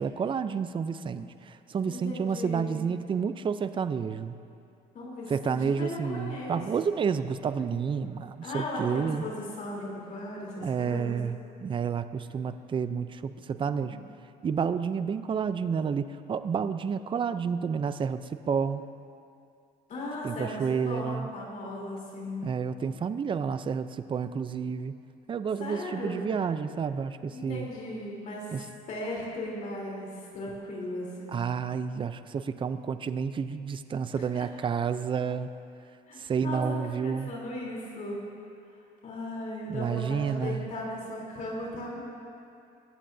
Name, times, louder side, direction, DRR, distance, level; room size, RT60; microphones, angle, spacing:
voice 1, 0.0-4.3 5.3-9.2 10.6-14.0 14.4-18.8 20.2-21.3 22.4-24.9 25.3-27.7 28.5-28.7 31.3-35.5 36.2-37.3 39.7-40.7, right 6 dB, 30° right, 11 dB, 0.5 m, -30 dB
voice 2, 1.9-2.7 4.9-6.6 8.4-11.2 13.8-14.0 19.9-22.6 25.6-26.3 27.3-28.5 28.9-31.4 34.2-34.3 36.1-38.2 39.0-42.0, left 1 dB, 50° left, -4 dB, 3.5 m, -37 dB
21.5 x 15.0 x 2.7 m, 2.5 s
cardioid pair, 110°, 17 cm